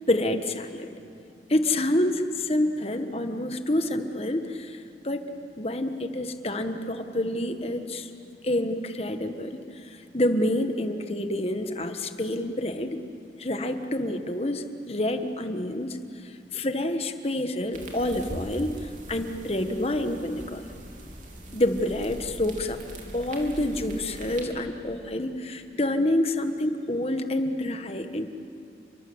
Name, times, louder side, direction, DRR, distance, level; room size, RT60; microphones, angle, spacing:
voice 1, 0.1-0.9 1.5-5.2 5.6-8.1 8.4-13.0 13.4-20.6 21.5-22.8 23.1-28.3, left 1 dB, 35° left, 7 dB, 1.4 m, -28 dB
sound 1, 17.7-24.4, right 1 dB, 45° right, 3.4 m, -41 dB
30.0 x 23.5 x 8.0 m, 2.5 s
head